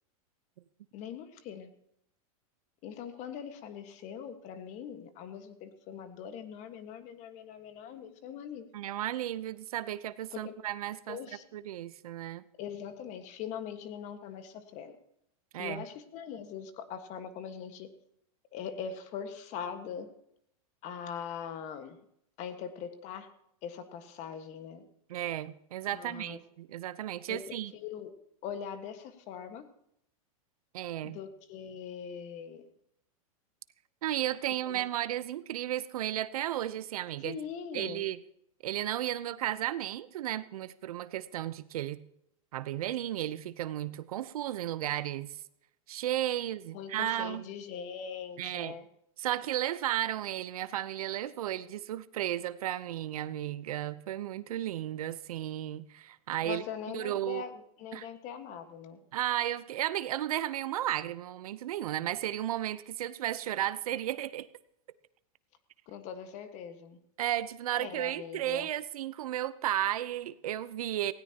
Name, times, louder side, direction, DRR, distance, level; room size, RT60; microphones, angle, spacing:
voice 1, 0.9-1.7 2.8-8.7 10.3-10.5 11.1-11.4 12.6-15.0 15.6-17.9 18.5-20.1 20.8-22.0 22.4-23.3 23.6-24.8 25.9-26.4 27.3-28.1 28.4-29.7 31.0-32.6 34.6-34.8 37.2-38.1 46.7-48.9 56.4-59.0 65.9-67.0 67.7-68.7, left 7 dB, 40° left, 9 dB, 1.6 m, -41 dB
voice 2, 8.7-11.2 11.5-12.4 15.5-15.8 25.1-27.7 30.7-31.2 34.0-37.4 37.7-38.2 38.6-42.0 42.5-45.4 45.9-47.4 48.4-48.8 49.2-56.6 56.9-57.4 57.9-58.1 59.1-64.5 67.2-71.1, right 12 dB, 80° right, 15 dB, 0.8 m, -34 dB
18.5 x 17.0 x 2.9 m, 0.76 s
supercardioid pair, 140°, 18 cm